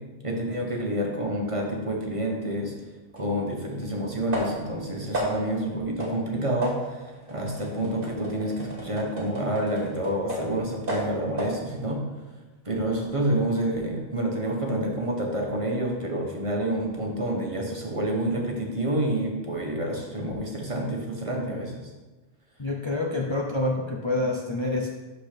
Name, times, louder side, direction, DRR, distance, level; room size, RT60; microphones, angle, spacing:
voice 1, 0.2-2.7 3.2-12.0 12.6-21.7, right 1 dB, 30° right, 0 dB, 1.1 m, -28 dB
sound 1, 3.2-3.3 4.3-4.8 5.1-5.6 6.0-6.2 6.6-10.6 10.9-11.6, right 1 dB, 60° right, 1.7 m, -33 dB
voice 2, 22.6-24.9, left 2 dB, 35° left, -1 dB, 0.6 m, -27 dB
11.5 x 4.1 x 3.4 m, 1.2 s
omnidirectional pair, 1.1 m